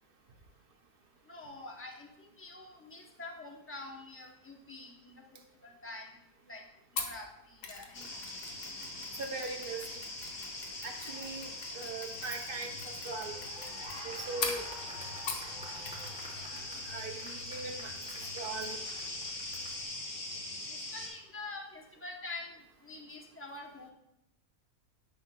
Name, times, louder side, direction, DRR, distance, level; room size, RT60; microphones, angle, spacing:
voice 1, 1.3-6.1 6.5-6.6 6.9-8.1 10.9-11.3 16.3-16.7 20.7-22.5 22.8-23.9, left 2 dB, 20° left, 1 dB, 0.3 m, -46 dB
Mechanisms, 7.0-15.6 15.8-16.3 16.6-16.7, left 4 dB, 75° left, 1.3 m, -43 dB
sound 1, 7.9-21.1, left 2 dB, 55° left, 1.6 m, -42 dB
voice 2, 9.2-9.9 10.8-13.4 14.0-14.7 16.8-18.0 18.4-18.8, right 3 dB, 60° right, 4 dB, 0.5 m, -40 dB
sound 2, 13.2-19.8, equal, 5° right, 0.9 m, -50 dB
9.3 x 6.4 x 2.2 m, 0.82 s
omnidirectional pair, 1.6 m